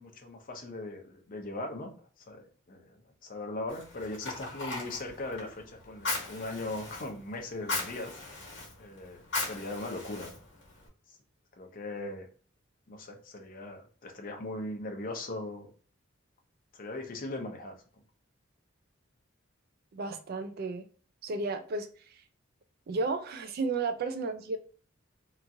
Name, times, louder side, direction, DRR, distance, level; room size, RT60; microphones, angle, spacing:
voice 1, 0.0-1.9 2.2-8.2 8.8-10.4 11.1-11.2 11.6-12.3 12.9-15.7 16.7-17.8, left 2 dB, 45° left, 3 dB, 0.6 m, -39 dB
Fire, 3.7-10.9, left 2 dB, 65° left, 1.2 m, -39 dB
voice 2, 19.9-20.9 21.2-21.9 22.9-24.6, right 3 dB, 50° right, 9 dB, 0.3 m, -33 dB
2.9 x 2.4 x 2.6 m, 0.42 s
head